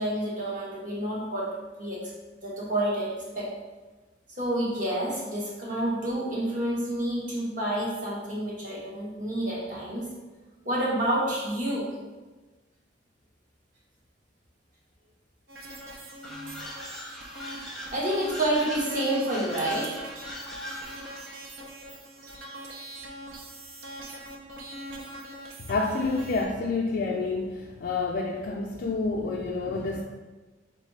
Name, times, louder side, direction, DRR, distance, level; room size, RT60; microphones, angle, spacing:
voice 1, 0.0-1.5 1.8-2.1 2.4-3.5 4.3-10.1 10.6-11.9 16.2-16.9 17.9-19.9, right 1 dB, 45° right, -5 dB, 1.1 m, -29 dB
sound 1, 15.5-26.4, right 1 dB, 75° right, 0.7 m, -42 dB
sound 2, 16.2-21.4, equal, ahead, 0.5 m, -41 dB
voice 2, 25.7-30.0, left 3 dB, 55° left, -2 dB, 0.4 m, -28 dB
4.0 x 3.6 x 3.2 m, 1.3 s
head